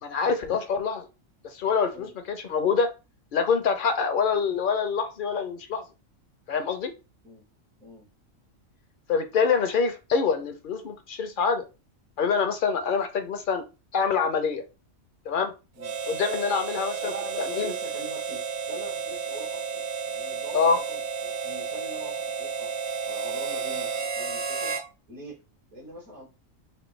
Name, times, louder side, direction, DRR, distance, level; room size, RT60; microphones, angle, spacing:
voice 1, 0.0-1.1 1.4-2.9 3.3-5.8 6.5-6.9 9.1-11.7 12.2-13.6 13.9-14.6 15.3-15.5 16.1-17.1 17.4-17.7 20.5-20.8, left 5 dB, 55° left, 8 dB, 0.6 m, -25 dB
Harmonica, 15.8-24.9, right 6 dB, 70° right, 0.4 m, -32 dB
voice 2, 17.0-18.4 18.7-22.7 23.0-24.8 25.1-25.4 25.7-26.3, right 1 dB, 85° right, -4 dB, 2.0 m, -42 dB
4.3 x 2.6 x 3.1 m, 0.29 s
omnidirectional pair, 1.4 m